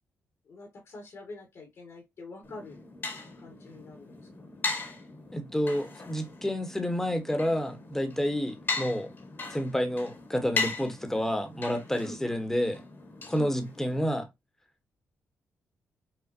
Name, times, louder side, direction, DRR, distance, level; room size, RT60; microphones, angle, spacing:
voice 1, 0.5-2.8 3.3-4.5 12.0-12.2 13.3-13.6, left 2 dB, 70° left, 1.9 m, -45 dB
sound 1, 2.4-14.1, left 4 dB, 45° left, 1.5 m, -38 dB
voice 2, 5.3-9.1 9.5-12.8 13.3-14.3, equal, 10° left, 1.2 m, -29 dB
5.9 x 2.3 x 2.7 m
cardioid pair, 70°, 5 cm